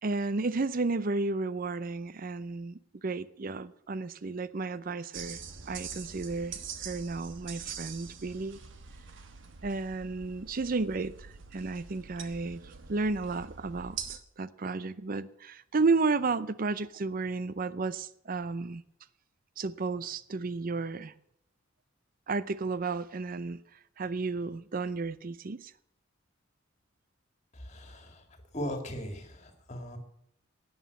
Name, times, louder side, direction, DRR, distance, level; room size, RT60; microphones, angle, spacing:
voice 1, 0.0-5.4 5.7-8.6 9.6-18.8 19.6-21.1 22.3-23.6 24.0-25.7, right 3 dB, 45° right, 16 dB, 0.5 m, -32 dB
sound 1, 5.1-14.2, right 6 dB, 65° right, 1.2 m, -44 dB
voice 2, 27.5-28.2 28.5-30.0, equal, 35° left, 5 dB, 2.2 m, -38 dB
11.0 x 9.6 x 8.3 m, 0.72 s
head